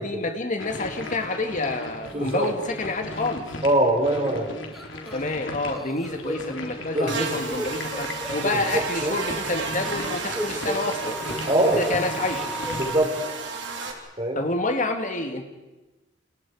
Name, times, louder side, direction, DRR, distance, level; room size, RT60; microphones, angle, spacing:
voice 1, 0.0-3.5 5.1-11.2 11.8-12.5 14.4-15.4, left 2 dB, 40° left, 5 dB, 2.2 m, -28 dB
sound 1, 0.6-12.8, left 2 dB, 85° left, 3.8 m, -37 dB
sound 2, 2.1-2.5 2.9-3.2 3.5-3.6 4.7-5.4 5.7-8.8 9.9-11.9 12.2-13.0, equal, ahead, 2.1 m, -35 dB
voice 2, 2.1-2.5 3.6-4.6 6.9-7.2 8.7-9.2 11.5-11.8 12.8-13.1 14.2-14.4, right 1 dB, 30° right, 3 dB, 4.7 m, -23 dB
Buzz, 7.1-13.9, right 4 dB, 65° right, 3.7 m, -32 dB
30.0 x 29.0 x 4.9 m, 1.1 s
head